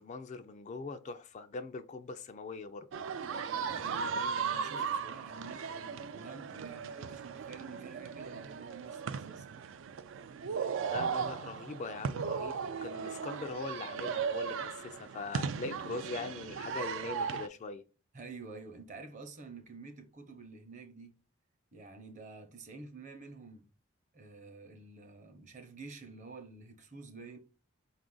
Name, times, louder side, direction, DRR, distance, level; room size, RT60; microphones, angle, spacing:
voice 1, 0.0-2.9 10.9-17.8, left 3 dB, 35° left, 0.3 m, -41 dB
sound 1, 2.9-17.5, right 6 dB, 65° right, 0.3 m, -37 dB
voice 2, 3.7-9.6 18.1-21.1 21.7-23.7 24.1-27.4, right 4 dB, 35° right, 0.7 m, -49 dB
4.9 x 2.4 x 3.8 m
head